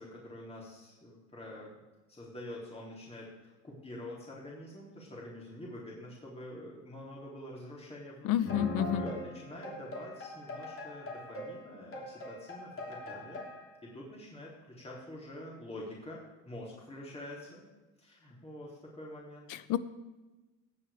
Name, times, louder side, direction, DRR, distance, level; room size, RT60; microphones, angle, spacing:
voice 1, 0.0-1.7 2.1-8.5 9.0-13.4 13.8-16.2 16.5-17.6 18.0-19.4, left 1 dB, 15° left, -4 dB, 3.3 m, -46 dB
voice 2, 8.2-9.0 19.5-19.8, left 11 dB, 55° left, 15 dB, 0.8 m, -29 dB
sound 1, 8.4-13.7, left 1 dB, 35° left, 3.1 m, -41 dB
17.0 x 7.7 x 3.5 m, 1.1 s
hypercardioid pair, 80°, 37 cm